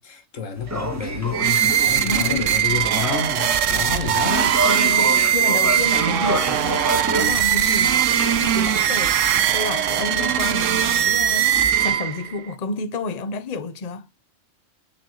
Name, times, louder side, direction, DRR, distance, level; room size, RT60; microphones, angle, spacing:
voice 1, 0.0-4.6, left 6 dB, 90° left, 1.8 m, -30 dB
sound 1, 0.6-11.9, right 1 dB, 15° right, 1.1 m, -30 dB
sound 2, 1.3-12.4, right 10 dB, 90° right, 1.1 m, -20 dB
voice 2, 2.0-2.5 4.2-14.1, left 3 dB, 35° left, 0.8 m, -30 dB
7.1 x 4.6 x 3.0 m
omnidirectional pair, 1.3 m